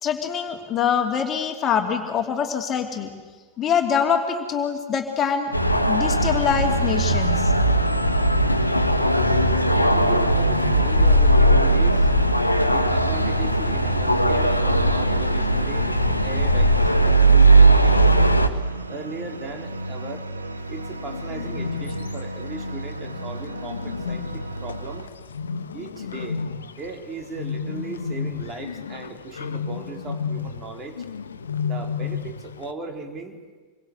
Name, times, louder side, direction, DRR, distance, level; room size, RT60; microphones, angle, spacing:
voice 1, 0.0-3.1 3.6-5.5 5.9-7.5, left 7 dB, 30° left, 4 dB, 2.8 m, -24 dB
sound 1, 5.5-18.5, right 1 dB, 85° left, 1.4 m, -18 dB
sound 2, 6.1-25.1, right 2 dB, 80° right, 1.8 m, -36 dB
voice 2, 10.0-12.1 12.7-18.4 18.9-20.2 20.7-25.1 25.7-26.4 26.8-31.0 31.6-33.4, right 3 dB, 25° right, 4 dB, 3.8 m, -37 dB
Bird, 20.6-32.7, left 6 dB, 70° left, 1.1 m, -33 dB
27.5 x 23.5 x 8.0 m, 1.4 s
figure-of-eight pair, 90°, 0 cm